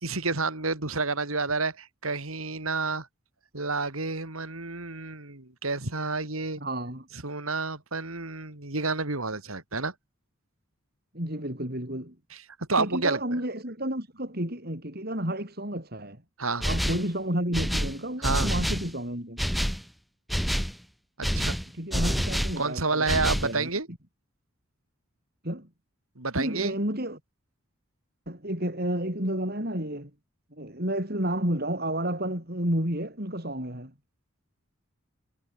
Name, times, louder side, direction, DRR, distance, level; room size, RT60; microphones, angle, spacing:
voice 1, 0.0-3.1 3.5-6.6 7.2-9.9 12.3-13.2 16.4-16.7 18.2-18.5 21.2-21.6 22.6-23.9 26.2-26.8, right 3 dB, 90° right, 4.0 m, -29 dB
voice 2, 6.6-7.1 11.1-12.2 12.8-16.2 16.6-19.4 21.8-23.7 25.4-25.7 26.4-27.2 28.3-30.1 30.5-33.9, right 1 dB, 45° right, 6.8 m, -31 dB
sound 1, 16.6-17.1 17.5-18.9 19.4-19.8 20.3-20.8 21.2-22.6 23.1-23.5, equal, ahead, 3.3 m, -27 dB
head